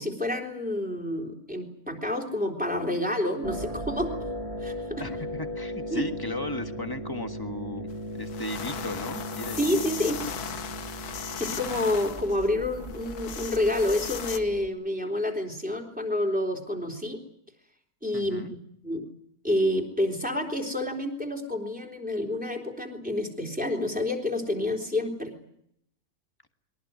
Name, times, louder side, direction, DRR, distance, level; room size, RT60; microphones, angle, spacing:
voice 1, 0.0-4.1 4.6-5.0 5.9-6.0 9.6-10.2 11.4-17.2 18.0-18.6 18.8-19.1 19.4-25.3, left 1 dB, 5° right, 2 dB, 3.7 m, -28 dB
sound 1, 3.4-14.7, equal, 25° right, 1.6 m, -37 dB
voice 2, 5.0-7.9 8.1-9.6 18.1-18.5, left 2 dB, 15° left, 6 dB, 1.6 m, -35 dB
sound 2, 7.9-8.0 8.3-14.4, left 8 dB, 80° left, 1.6 m, -37 dB
23.0 x 18.0 x 9.6 m, 0.73 s
omnidirectional pair, 1.6 m